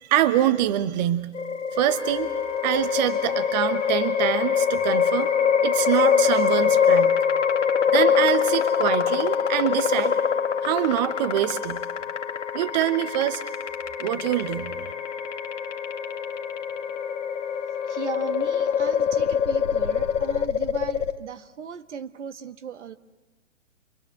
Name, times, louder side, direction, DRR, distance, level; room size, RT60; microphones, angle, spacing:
voice 1, 0.0-1.3 1.7-2.3 2.6-5.3 5.6-7.1 7.9-10.2 10.6-11.8 12.5-13.4 14.0-14.7, right 13 dB, 35° right, 13 dB, 1.1 m, -25 dB
sound 1, 1.3-21.2, left 7 dB, 75° left, 2.0 m, -24 dB
Wind instrument woodwind instrument, 1.9-20.5, left 7 dB, 55° left, 1.6 m, -37 dB
voice 2, 17.9-23.0, right 7 dB, 70° right, 10 dB, 1.5 m, -37 dB
28.0 x 22.0 x 7.9 m, 1.3 s
hypercardioid pair, 135°, 37 cm